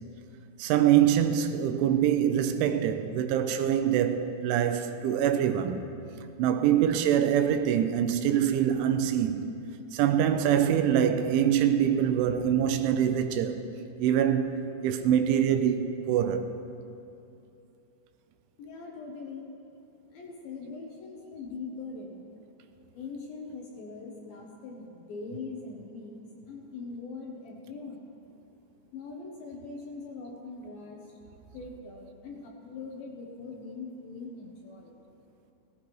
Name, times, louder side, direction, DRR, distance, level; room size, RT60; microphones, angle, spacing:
voice 1, 0.6-5.9 6.4-9.5 9.9-13.6 14.0-16.6, right 9 dB, 85° right, 3.0 m, -24 dB
voice 2, 18.6-19.5 20.1-22.4 22.9-28.0 28.9-34.9, left 4 dB, 80° left, 2.1 m, -42 dB
17.5 x 15.0 x 3.1 m
omnidirectional pair, 5.7 m